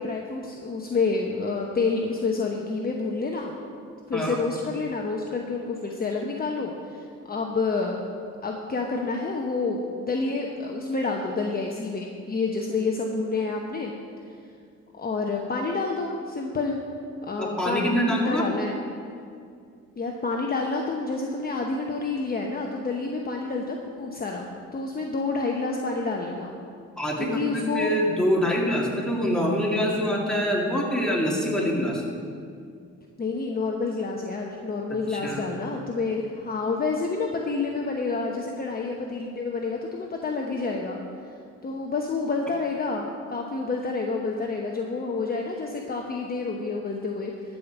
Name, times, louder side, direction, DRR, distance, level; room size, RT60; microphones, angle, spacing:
voice 1, 0.0-3.5 4.1-8.0 8.4-13.9 14.9-16.8 17.2-18.8 20.0-26.5 27.2-28.0 33.2-41.0 41.6-47.6, left 3 dB, 30° left, 1 dB, 1.0 m, -29 dB
voice 2, 17.4-18.5 27.0-32.0 35.1-35.5, equal, ahead, -3 dB, 2.2 m, -25 dB
13.0 x 5.2 x 7.2 m, 2.3 s
cardioid pair, 90°, 30 cm